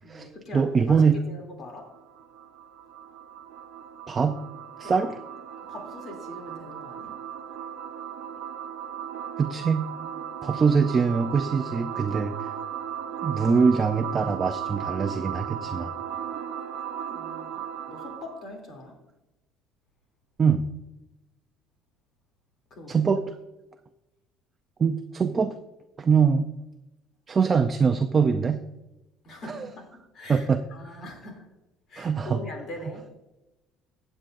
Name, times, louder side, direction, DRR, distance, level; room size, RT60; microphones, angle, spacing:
voice 1, 0.0-1.0 1.3-1.9 4.8-4.9 5.6-7.2 17.1-19.0 22.7-23.0 29.2-31.5 31.9-33.1, left 1 dB, 40° left, 2 dB, 2.8 m, -42 dB
voice 2, 0.5-1.2 4.1-4.4 4.8-5.1 9.4-9.9 10.4-12.5 13.2-15.9 20.4-20.7 22.9-23.2 24.8-25.5 26.0-26.5 27.3-28.6 29.5-29.7 30.3-30.6 32.0-32.4, right 5 dB, 20° right, 6 dB, 0.5 m, -23 dB
sound 1, 1.8-18.4, right 9 dB, 80° right, 0.9 m, -36 dB
15.5 x 8.9 x 2.6 m, 0.98 s
cardioid pair, 170°, 0 cm